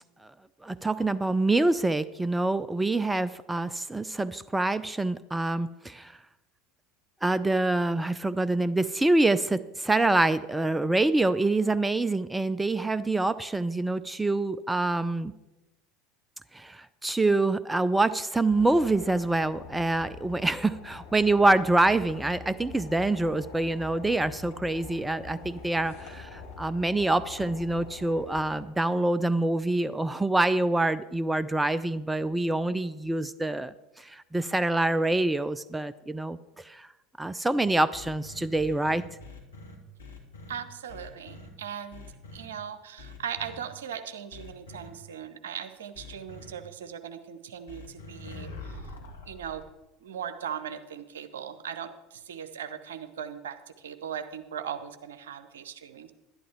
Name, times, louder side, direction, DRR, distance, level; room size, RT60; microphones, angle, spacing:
voice 1, 0.6-6.1 7.2-15.3 16.5-36.9 37.2-39.0, right 2 dB, 10° right, 15 dB, 0.4 m, -26 dB
sound 1, 18.5-28.6, left 5 dB, 55° left, 3.9 m, -45 dB
sound 2, 37.9-40.6 40.9-41.5 41.9-42.5 43.0-43.6 44.3-44.9 45.9-46.5 47.7-49.6, left 2 dB, 75° left, 1.7 m, -44 dB
voice 2, 40.5-42.1 42.3-48.8 49.3-49.6 50.0-56.1, right 8 dB, 70° right, 10 dB, 0.8 m, -39 dB
11.5 x 11.0 x 4.3 m, 1.0 s
figure-of-eight pair, 70°, 0 cm